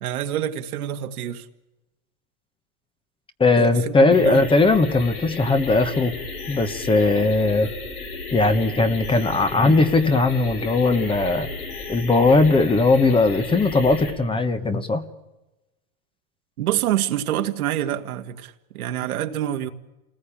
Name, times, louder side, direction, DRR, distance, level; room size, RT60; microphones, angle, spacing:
voice 1, 0.0-1.5 3.6-4.4 16.6-19.7, right 12 dB, 85° right, 2.1 m, -26 dB
voice 2, 3.4-6.1 6.5-7.7 8.3-11.5 11.9-15.0, left 3 dB, 10° left, 1.2 m, -19 dB
sound 1, 4.1-14.1, left 3 dB, 90° left, 7.2 m, -34 dB
28.0 x 19.5 x 8.7 m
supercardioid pair, 140°, 42 cm